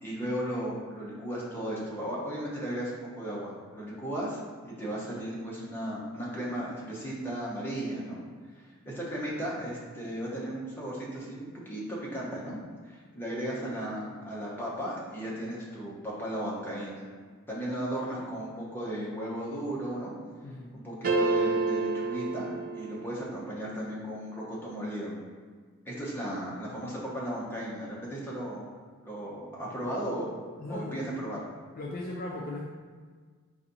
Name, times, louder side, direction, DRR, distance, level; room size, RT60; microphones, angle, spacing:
voice 1, 0.0-8.2 8.5-12.6 12.8-17.1 17.5-20.1 20.7-25.1 25.8-28.7 29.0-30.3 30.7-31.4, right 1 dB, 10° left, -6 dB, 0.8 m, -35 dB
voice 2, 20.4-20.8 30.6-31.0 31.7-32.7, left 2 dB, 40° left, -2 dB, 0.4 m, -37 dB
sound 1, 21.0-23.3, right 3 dB, 40° right, 0.4 m, -28 dB
4.0 x 2.7 x 4.0 m, 1.5 s
head